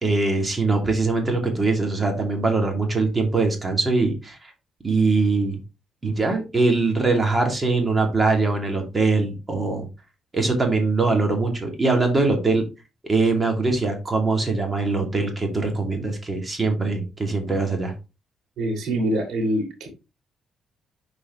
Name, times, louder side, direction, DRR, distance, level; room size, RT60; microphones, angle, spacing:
voice 1, 0.0-4.4 4.8-5.6 6.0-9.9 10.3-12.6 13.0-17.9, right 3 dB, 25° right, 3 dB, 2.4 m, -22 dB
voice 2, 18.6-19.9, right 1 dB, 75° right, 2 dB, 3.0 m, -24 dB
6.8 x 4.8 x 3.2 m, 0.28 s
cardioid pair, 90°, 0 cm